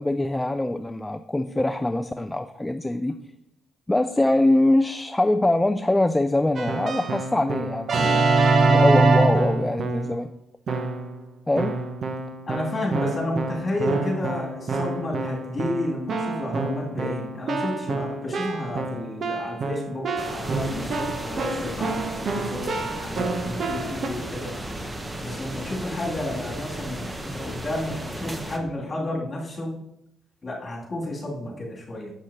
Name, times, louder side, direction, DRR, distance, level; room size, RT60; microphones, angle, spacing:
voice 1, 0.0-3.2 3.9-10.3 11.5-11.8, left 1 dB, 10° left, 8 dB, 0.3 m, -23 dB
Keyboard (musical), 6.6-10.2 10.7-11.2 11.6-24.1, right 3 dB, 55° right, 0.8 m, -26 dB
voice 2, 12.5-24.5 25.2-29.7 30.4-32.1, left 1 dB, 30° left, -3 dB, 2.7 m, -31 dB
sound 1, 20.2-28.6, right 1 dB, 15° right, 0.9 m, -34 dB
7.8 x 6.2 x 2.9 m, 0.82 s
cardioid pair, 90°, 0 cm